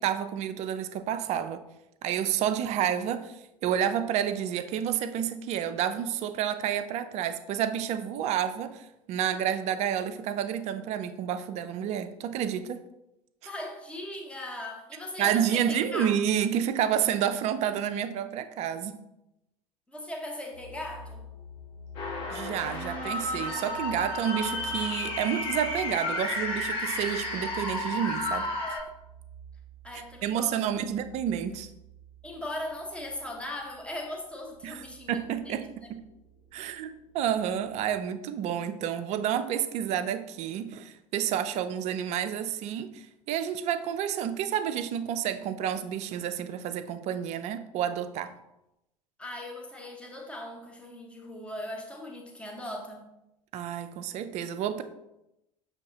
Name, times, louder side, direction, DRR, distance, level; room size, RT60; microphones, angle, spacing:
voice 1, 0.0-1.6 2.0-12.8 15.2-19.0 22.3-28.5 29.9-31.7 34.6-36.0 36.5-48.3 53.5-54.8, right 9 dB, 35° right, 10 dB, 0.4 m, -30 dB
voice 2, 13.5-16.1 19.9-21.2 29.8-30.9 32.2-35.6 49.2-53.0, left 1 dB, 5° left, 1 dB, 0.8 m, -39 dB
sound 1, 20.5-38.0, right 1 dB, 80° left, 0.7 m, -49 dB
sound 2, 21.9-28.8, left 2 dB, 50° left, 1.5 m, -32 dB
6.3 x 2.8 x 2.7 m, 0.89 s
figure-of-eight pair, 75°, 19 cm